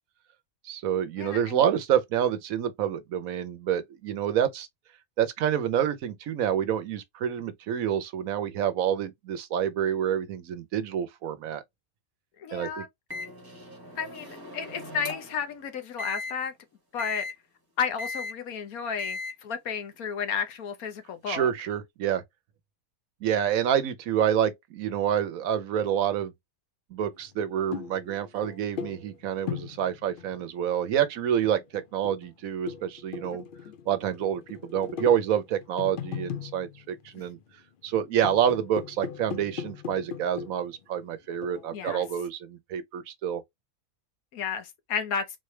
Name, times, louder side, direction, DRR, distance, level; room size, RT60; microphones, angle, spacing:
voice 1, 0.6-4.7 5.2-11.6 12.5-12.8 21.3-22.2 23.2-26.3 26.9-33.4 33.9-37.4 37.8-43.4, right 9 dB, 75° right, 1.1 m, -28 dB
voice 2, 1.2-1.6 12.4-12.9 14.0-16.5 16.9-17.3 17.8-21.5 33.6-33.7 41.7-42.0 44.3-45.2, left 6 dB, 85° left, 1.4 m, -32 dB
Microwave oven, 13.1-15.4 16.0-16.3 17.0-17.3 18.0-18.3 19.0-19.3, left 3 dB, 15° right, 1.3 m, -37 dB
sound 1, 27.3-30.7 31.3-37.5 37.9-40.8 41.4-42.1, left 8 dB, 60° left, 0.5 m, -39 dB
4.0 x 3.2 x 3.2 m
omnidirectional pair, 1.5 m